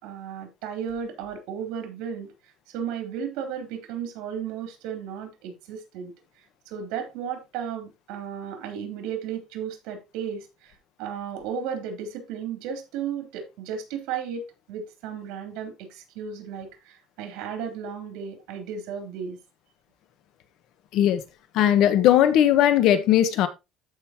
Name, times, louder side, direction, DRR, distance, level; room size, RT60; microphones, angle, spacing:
voice 1, 0.0-2.3 2.7-6.1 6.7-10.7 11.0-19.4, right 7 dB, 80° right, 3.4 m, -34 dB
voice 2, 21.5-23.5, left 11 dB, 60° left, 1.3 m, -18 dB
13.5 x 5.5 x 3.0 m
cardioid pair, 150°, 0 cm